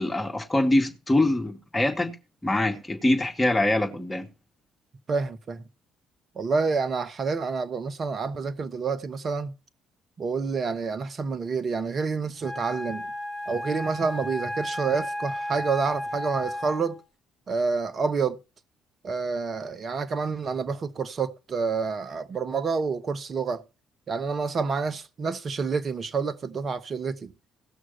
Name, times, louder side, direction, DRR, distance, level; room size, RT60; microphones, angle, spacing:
voice 1, 0.0-2.2 2.4-4.3, left 1 dB, 15° left, 2.2 m, -24 dB
voice 2, 5.1-5.6 6.4-9.5 10.2-13.1 13.5-17.0 17.5-18.4 19.0-23.6 24.1-27.3, right 5 dB, 45° right, 1.0 m, -28 dB
Wind instrument woodwind instrument, 12.4-17.0, left 1 dB, 25° right, 5.1 m, -33 dB
17.0 x 6.2 x 4.3 m
hypercardioid pair, 50°, 0 cm